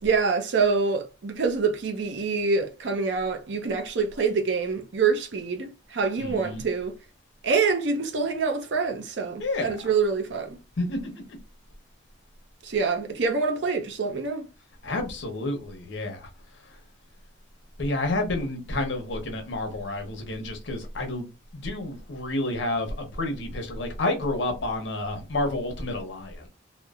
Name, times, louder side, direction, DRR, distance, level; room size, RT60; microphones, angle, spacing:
voice 1, 0.0-6.9 7.4-10.6 12.6-14.5, right 4 dB, 70° right, 0.5 m, -26 dB
voice 2, 6.2-6.6 9.4-9.8 10.8-11.4 14.8-16.3 17.8-26.5, left 2 dB, 70° left, 0.7 m, -30 dB
2.9 x 2.0 x 2.3 m
head